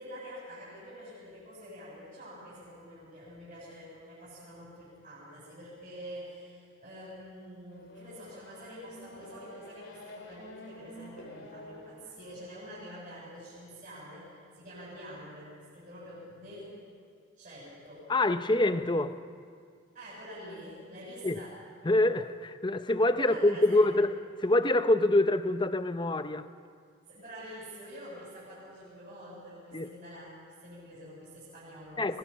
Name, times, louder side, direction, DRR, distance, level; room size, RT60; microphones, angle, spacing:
voice 1, 0.0-16.7 17.4-18.1 19.9-21.6 23.2-23.9 27.1-30.4 30.6-32.2, equal, 40° right, 7.8 m, -46 dB
Race car auto racing / Accelerating revving vroom, 7.7-12.9, left 1 dB, 75° left, 3.3 m, -49 dB
voice 2, 18.1-19.2 21.2-21.4 21.8-26.4 29.7-29.9 32.0-32.2, left 2 dB, 25° left, 0.7 m, -26 dB
24.0 x 20.0 x 5.8 m
head